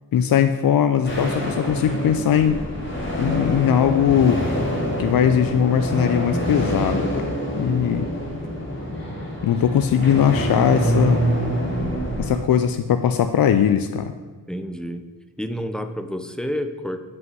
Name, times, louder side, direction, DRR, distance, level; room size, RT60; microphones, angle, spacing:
voice 1, 0.1-2.6 3.2-4.4 5.0-8.1 9.4-11.2 12.2-14.1, left 8 dB, 75° left, 8 dB, 0.5 m, -20 dB
sound 1, 1.0-12.4, equal, 30° left, 3.0 m, -26 dB
voice 2, 14.5-15.1 15.4-17.0, equal, ahead, 8 dB, 0.6 m, -29 dB
8.0 x 5.6 x 7.7 m, 1.4 s
wide cardioid pair, 140°, 35 cm